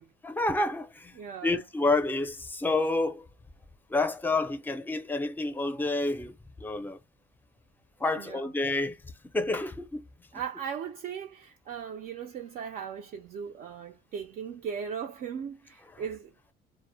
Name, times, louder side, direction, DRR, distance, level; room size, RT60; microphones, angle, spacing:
voice 1, 0.2-3.3 3.9-7.0 8.0-10.0, left 2 dB, 10° left, 0.5 m, -29 dB
voice 2, 1.1-1.6 8.2-8.5 10.3-16.3, right 7 dB, 60° right, 0.4 m, -38 dB
2.1 x 2.1 x 3.2 m
cardioid pair, 110°, 17 cm